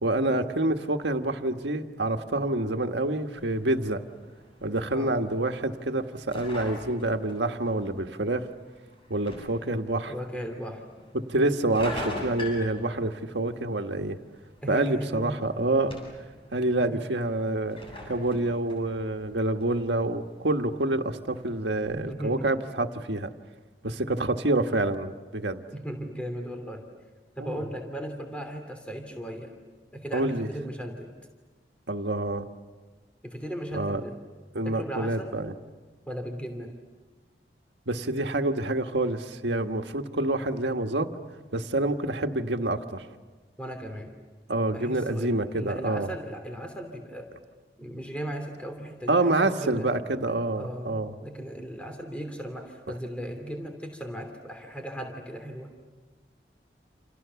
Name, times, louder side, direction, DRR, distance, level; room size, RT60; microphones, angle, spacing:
voice 1, 0.0-4.0 4.6-8.5 9.1-10.1 11.1-14.2 14.7-16.0 16.5-17.8 18.1-23.3 23.8-25.6 27.4-27.6 30.1-30.5 31.9-32.5 33.7-34.0 34.5-35.5 37.9-41.1 41.5-43.0 44.5-46.1 49.1-51.1, right 2 dB, 85° right, 5 dB, 1.6 m, -27 dB
sound 1, 3.3-21.9, left 1 dB, 30° left, 7.6 m, -44 dB
voice 2, 10.1-10.8 11.7-12.0 14.6-15.4 21.9-22.6 25.7-26.8 27.4-29.5 29.9-31.1 33.2-34.2 34.6-35.4 36.1-36.8 43.6-44.1 44.7-47.3 47.8-49.9 50.6-55.7, equal, 5° left, 4 dB, 3.0 m, -37 dB
29.5 x 28.5 x 7.1 m, 1.3 s
head